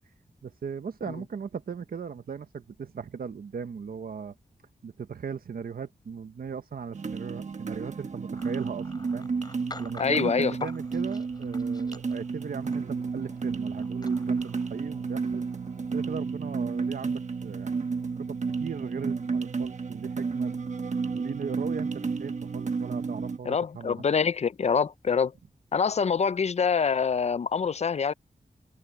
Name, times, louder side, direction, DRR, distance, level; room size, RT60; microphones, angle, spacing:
voice 1, 0.4-4.3 4.8-9.3 9.8-15.4 15.9-20.6 21.1-24.0, right 6 dB, 80° right, 1.1 m, -38 dB
sound 1, 6.9-23.4, right 4 dB, 50° right, 1.2 m, -31 dB
sound 2, 8.3-16.2, left 2 dB, 25° left, 5.9 m, -50 dB
voice 2, 10.0-10.5 23.5-25.3 25.7-28.1, left 6 dB, 45° left, 0.5 m, -25 dB
open air
wide cardioid pair, 120°, 15 cm